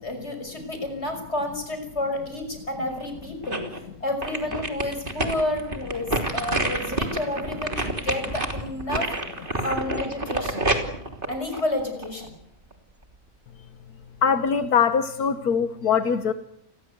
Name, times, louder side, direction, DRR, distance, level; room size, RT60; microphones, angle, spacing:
voice 1, 0.0-3.7 4.0-9.2 9.6-10.7 11.3-12.4, left 1 dB, 45° left, 6 dB, 6.3 m, -30 dB
sound 1, 3.0-3.8 4.2-12.3 12.7-12.8, right 2 dB, 35° right, 3.3 m, -28 dB
voice 2, 14.2-16.3, left 7 dB, 90° left, 10 dB, 1.7 m, -22 dB
29.5 x 21.0 x 8.0 m, 0.74 s
omnidirectional pair, 1.5 m